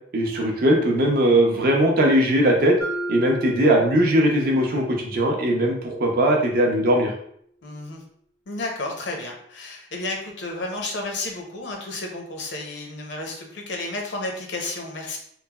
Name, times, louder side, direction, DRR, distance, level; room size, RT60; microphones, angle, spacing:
voice 1, 0.1-2.8 3.1-7.1, right 1 dB, 50° right, 1 dB, 0.5 m, -19 dB
Mallet percussion, 2.8-6.8, right 1 dB, 10° left, 0.4 m, -34 dB
voice 2, 7.6-8.0 8.5-15.2, left 2 dB, 65° left, 2 dB, 0.5 m, -32 dB
3.1 x 2.0 x 2.2 m, 0.66 s
head